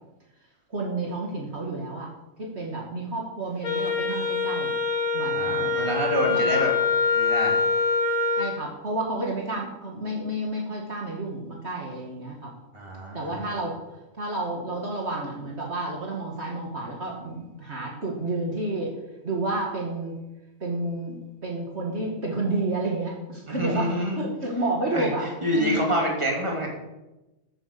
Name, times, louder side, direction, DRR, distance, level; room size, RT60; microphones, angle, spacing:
voice 1, 0.7-2.1 2.4-4.7 5.1-5.9 6.2-6.9 8.4-12.5 13.1-13.7 14.1-18.9 19.2-20.1 20.6-23.9 24.2-25.3 25.5-25.9, right 2 dB, 55° right, -2 dB, 2.4 m, -30 dB
Wind instrument woodwind instrument, 3.6-8.5, left 4 dB, 85° left, 2.7 m, -24 dB
voice 2, 5.3-6.7 7.1-7.6 12.7-13.4 23.5-24.3 24.9-26.7, equal, 20° right, -1 dB, 3.2 m, -27 dB
14.0 x 8.2 x 6.8 m, 1.0 s
omnidirectional pair, 1.4 m